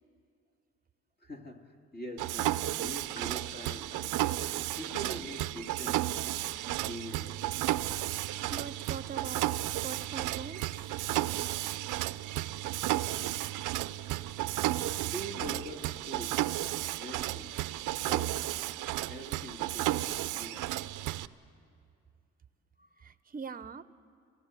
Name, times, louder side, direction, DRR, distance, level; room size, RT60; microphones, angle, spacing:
voice 1, 1.2-4.2 4.6-6.2 6.7-7.5 14.7-16.5 16.9-17.7 18.0-18.5 19.1-20.8 22.8-23.0, equal, 30° left, 3 dB, 2.3 m, -44 dB
Mechanisms, 2.2-21.3, right 15 dB, 85° right, 0.6 m, -33 dB
voice 2, 8.5-9.5 9.8-11.0 23.0-23.8, right 5 dB, 30° right, 14 dB, 0.8 m, -42 dB
28.0 x 16.0 x 8.3 m, 2.4 s
cardioid pair, 90°, 30 cm